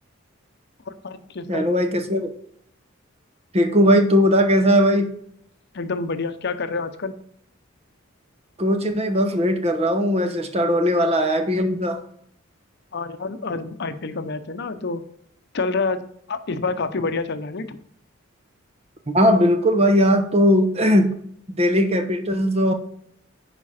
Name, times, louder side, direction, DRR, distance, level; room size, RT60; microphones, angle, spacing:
voice 1, 0.9-1.7 5.7-7.1 12.9-15.0 15.5-16.0 16.3-17.8, left 3 dB, 55° left, 9 dB, 0.7 m, -28 dB
voice 2, 1.5-2.3 3.5-5.1 8.6-12.0 19.1-21.2 21.5-22.7, equal, 30° right, 7 dB, 1.0 m, -19 dB
9.7 x 5.1 x 4.2 m, 0.68 s
head